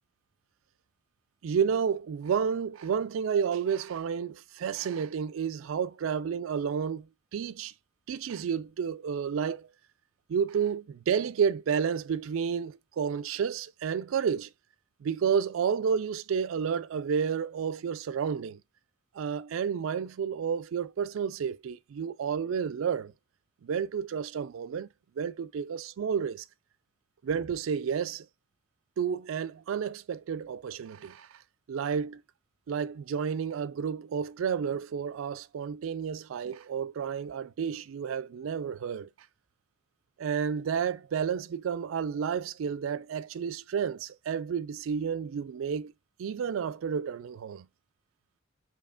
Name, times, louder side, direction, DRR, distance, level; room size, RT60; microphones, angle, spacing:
voice 1, 1.4-7.7 8.1-9.7 10.3-14.5 15.0-18.6 19.1-23.1 23.6-24.9 25.2-26.4 27.2-28.3 29.0-31.3 31.7-32.2 32.7-39.1 40.2-45.9 46.2-47.7, right 7 dB, 80° right, 0.4 m, -31 dB
4.9 x 2.8 x 2.3 m
head